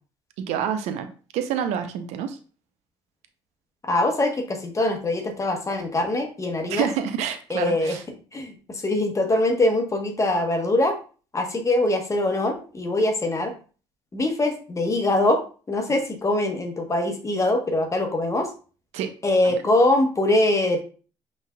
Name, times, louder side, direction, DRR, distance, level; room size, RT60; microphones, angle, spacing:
voice 1, 0.4-1.1 1.3-2.4 6.7-8.0 18.9-19.1 19.4-19.5, right 8 dB, 80° right, 9 dB, 0.6 m, -27 dB
voice 2, 3.8-6.9 7.5-8.0 8.3-10.9 11.3-13.5 14.1-15.4 15.7-18.5 19.2-20.8, left 1 dB, 25° left, 3 dB, 1.1 m, -23 dB
5.5 x 3.3 x 2.2 m, 0.38 s
supercardioid pair, 70°, 11 cm